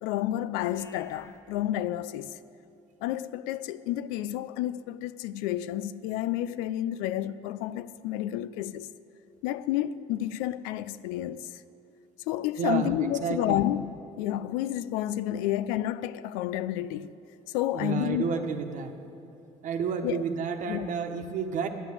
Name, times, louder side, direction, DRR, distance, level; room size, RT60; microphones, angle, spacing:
voice 1, 0.0-2.4 3.0-8.9 9.4-11.5 12.3-17.1 17.5-18.3 20.0-20.2 20.7-20.9, left 13 dB, 85° left, 0.4 m, -30 dB
Livestock farm animals working animals, 0.5-1.4, left 2 dB, 15° left, 1.2 m, -53 dB
voice 2, 12.6-13.6 17.7-18.9 19.6-21.7, right 6 dB, 55° right, 1.2 m, -30 dB
10.0 x 9.8 x 7.4 m
supercardioid pair, 90°, 15 cm